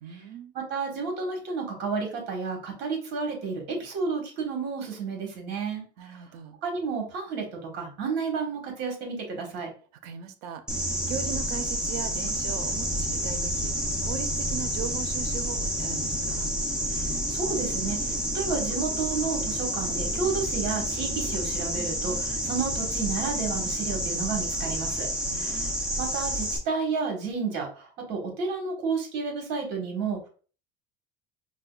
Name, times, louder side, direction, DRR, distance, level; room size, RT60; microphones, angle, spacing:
voice 1, 0.0-0.5 6.0-6.6 10.0-10.6 11.0-16.5 25.2-25.7, right 8 dB, 80° right, 0.6 m, -39 dB
voice 2, 0.5-6.2 6.6-9.7 16.9-25.1 25.3-25.7 26.0-30.3, right 5 dB, 55° right, 1.3 m, -31 dB
sound 1, 10.7-26.6, equal, 5° right, 0.5 m, -29 dB
4.7 x 2.2 x 2.3 m
supercardioid pair, 130°, 21 cm